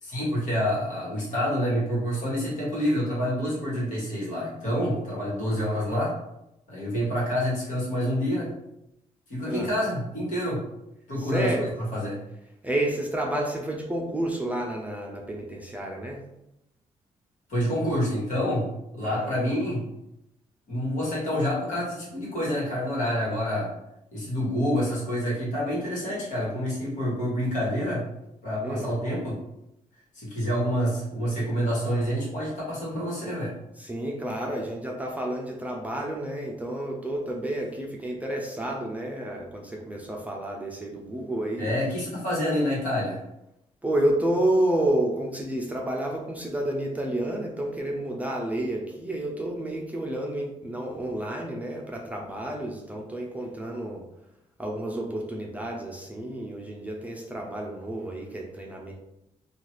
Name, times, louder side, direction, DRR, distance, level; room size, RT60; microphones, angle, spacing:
voice 1, 0.0-6.1 6.7-8.5 9.3-10.6 11.1-11.5 11.9-12.2 17.5-18.7 18.9-19.8 20.7-23.7 24.1-28.0 28.4-29.3 30.1-33.5 41.6-43.2, equal, 65° left, -5 dB, 1.5 m, -27 dB
voice 2, 11.2-11.7 12.6-16.2 19.0-19.4 28.6-28.9 33.8-41.7 43.8-54.0 54.6-58.9, right 1 dB, 10° right, -1 dB, 0.5 m, -30 dB
2.8 x 2.4 x 3.1 m, 0.84 s
cardioid pair, 90°, 14 cm